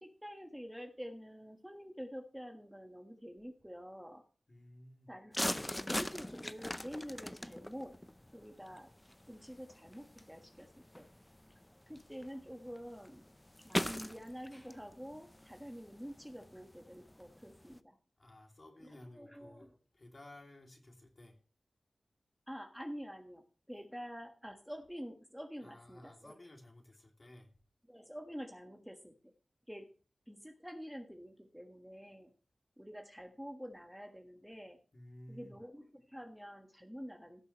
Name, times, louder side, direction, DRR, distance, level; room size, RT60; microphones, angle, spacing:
voice 1, 0.0-4.2 5.1-7.9 8.3-8.9 9.3-11.1 11.9-13.3 13.6-18.0 18.8-19.7 22.5-26.3 27.9-29.3 29.7-29.9 30.3-32.3 32.8-34.8 35.3-37.4, equal, ahead, 1.5 m, -48 dB
voice 2, 4.5-5.1 18.2-21.4 25.6-27.5 34.9-35.6, left 1 dB, 45° left, 2.7 m, -55 dB
sound 1, 5.3-17.8, left 1 dB, 15° left, 0.5 m, -43 dB
17.0 x 6.9 x 3.1 m
wide cardioid pair, 60°, 0 cm